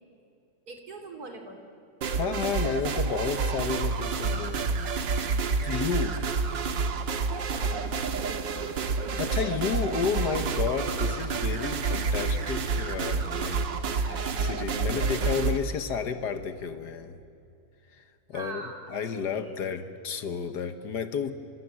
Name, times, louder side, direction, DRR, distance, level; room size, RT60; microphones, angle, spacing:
voice 1, 0.7-1.6 6.2-6.4 7.5-8.5 18.3-18.9 19.2-19.8, right 3 dB, 55° right, 3 dB, 3.6 m, -43 dB
sound 1, 2.0-15.6, right 4 dB, 80° right, 2.1 m, -29 dB
voice 2, 2.1-4.8 5.6-6.2 9.2-13.6 13.9-17.2 17.9-18.0 18.3-21.3, left 6 dB, 65° left, 9 dB, 1.7 m, -32 dB
29.0 x 26.5 x 7.7 m, 2.6 s
omnidirectional pair, 2.0 m